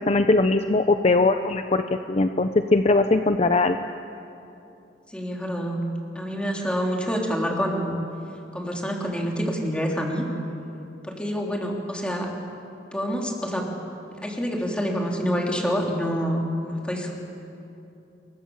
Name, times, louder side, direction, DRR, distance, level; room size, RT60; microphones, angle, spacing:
voice 1, 0.0-1.8 2.1-3.8, left 2 dB, 35° left, 8 dB, 0.7 m, -20 dB
voice 2, 5.1-5.8 6.2-7.9 8.5-10.3 11.1-12.3 12.9-13.6 14.2-17.1, equal, 5° left, -1 dB, 3.6 m, -27 dB
27.5 x 23.0 x 7.3 m, 2.7 s
head